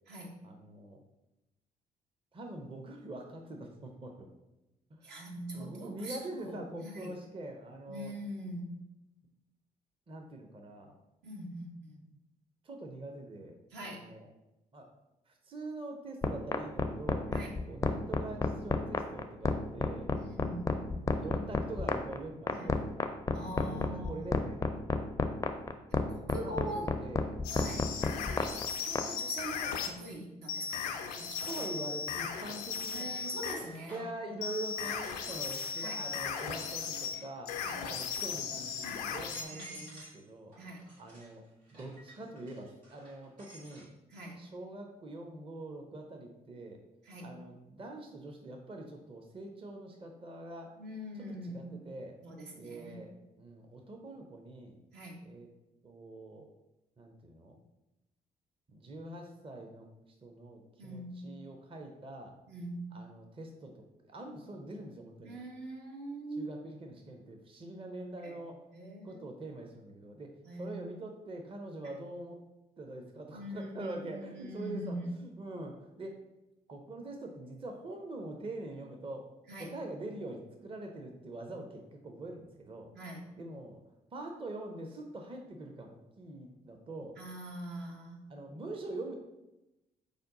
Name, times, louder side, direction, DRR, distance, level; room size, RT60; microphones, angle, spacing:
voice 1, 0.4-1.0 2.3-4.3 4.9-5.2 5.5-8.1 10.1-10.9 12.6-14.3 14.7-14.9 15.3-17.3 17.7-20.1 21.2-22.8 23.6-25.1 26.0-27.3 31.5-33.3 33.9-40.5 41.0-41.4 41.7-43.9 44.4-46.8 47.2-50.7 51.1-52.2 52.6-54.8 55.2-55.5 55.8-56.5 57.0-57.6 58.7-59.9 60.2-62.4 62.9-65.4 66.4-68.6 69.0-72.4 72.8-76.1 76.7-79.3 79.6-82.9 83.4-83.8 84.1-87.2 88.3-89.1, right 2 dB, 30° right, 3 dB, 0.6 m, -44 dB
voice 2, 5.0-7.1 7.9-8.8 11.2-12.0 13.7-14.0 17.3-17.5 20.1-20.9 22.5-22.8 23.3-24.4 25.9-26.9 27.5-27.9 28.7-31.5 32.9-34.0 35.8-36.0 37.6-37.8 39.5-39.8 40.6-40.9 44.1-44.4 47.0-47.3 50.8-51.8 52.2-53.0 54.9-55.2 60.8-61.2 62.5-63.0 65.2-66.5 68.2-68.4 68.7-69.2 70.4-70.8 73.3-75.1 79.5-79.8 82.9-83.3 87.2-88.3, right 1 dB, 65° right, -1 dB, 0.9 m, -43 dB
sound 1, 16.2-29.1, left 3 dB, 15° left, 0.4 m, -29 dB
sound 2, 27.4-30.0 30.5-33.6 34.4-39.4, left 6 dB, 80° left, 0.4 m, -37 dB
sound 3, 27.8-27.9 29.6-30.1 30.5-34.3 34.8-37.4 37.7-38.2 38.7-38.8 39.1-40.2 40.5-43.9, right 1 dB, 85° right, 1.1 m, -53 dB
5.0 x 2.2 x 3.7 m, 0.95 s
hypercardioid pair, 45°, 19 cm